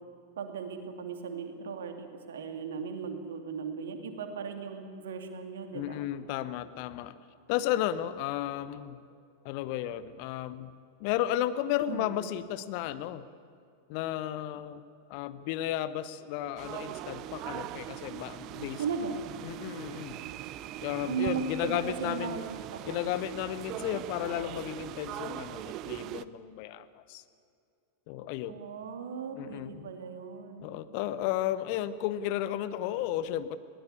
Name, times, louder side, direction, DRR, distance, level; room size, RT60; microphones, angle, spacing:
voice 1, 0.4-6.0 11.9-12.2 18.8-19.2 21.1-22.4 22.7-23.0 28.5-30.7, right 6 dB, 60° right, 6 dB, 2.6 m, -37 dB
voice 2, 5.7-7.1 7.5-9.0 9.4-10.7 11.0-13.3 13.9-14.8 15.1-18.8 19.4-20.2 20.8-22.4 22.8-27.2 28.1-28.6 29.3-29.9 30.6-33.6, left 12 dB, 45° left, 14 dB, 0.9 m, -33 dB
sound 1, 16.6-26.2, right 14 dB, 40° right, 0.7 m, -41 dB
20.5 x 18.5 x 8.5 m, 2.4 s
figure-of-eight pair, 90°, 0 cm